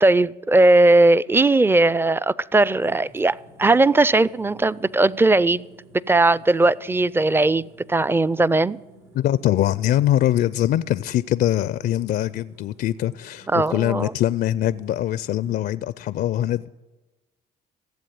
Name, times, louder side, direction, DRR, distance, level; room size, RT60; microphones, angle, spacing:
voice 1, 0.0-5.6 6.1-8.8 13.5-14.1, right 2 dB, 10° right, 0.4 m, -18 dB
sound 1, 2.8-15.6, right 2 dB, 90° right, 3.9 m, -51 dB
voice 2, 9.1-16.7, left 12 dB, 55° left, 0.4 m, -23 dB
15.5 x 7.6 x 9.3 m
hypercardioid pair, 60°, 19 cm